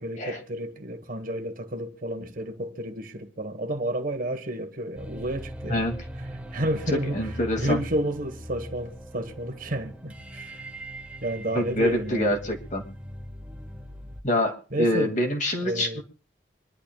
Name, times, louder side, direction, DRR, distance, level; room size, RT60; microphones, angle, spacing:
voice 1, 0.0-5.8 6.5-7.3 7.6-10.6 11.2-12.4 14.7-15.2 15.6-16.0, right 1 dB, 50° right, 1.4 m, -31 dB
sound 1, 4.9-14.2, equal, 5° right, 1.3 m, -40 dB
voice 2, 7.1-7.8 11.5-12.9 14.2-16.0, left 1 dB, 45° left, 2.4 m, -26 dB
25.5 x 11.5 x 2.4 m
head